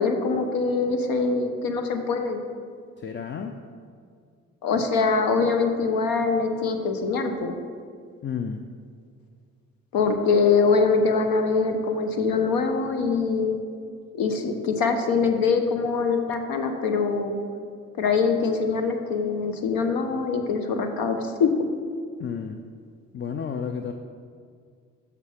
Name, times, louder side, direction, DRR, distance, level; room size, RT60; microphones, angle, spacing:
voice 1, 0.0-2.4 4.6-7.5 9.9-13.6 14.1-17.4 18.0-21.5, left 4 dB, 65° left, 6 dB, 0.9 m, -23 dB
voice 2, 3.0-3.5 8.2-8.6 22.2-22.6 23.1-23.9, left 6 dB, 30° left, 5 dB, 0.5 m, -31 dB
6.6 x 5.7 x 5.0 m, 2.1 s
hypercardioid pair, 50°, 38 cm